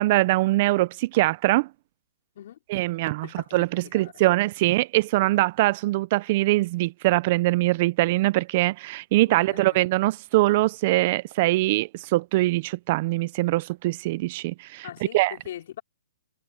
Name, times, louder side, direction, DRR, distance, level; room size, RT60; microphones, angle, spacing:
voice 1, 0.0-1.7 2.7-14.9 15.1-15.3, right 19 dB, 40° right, 0.5 m, -23 dB
voice 2, 3.2-4.1 9.2-9.9 14.8-15.8, left 11 dB, 55° left, 5.0 m, -41 dB
hypercardioid pair, 150°, 0 cm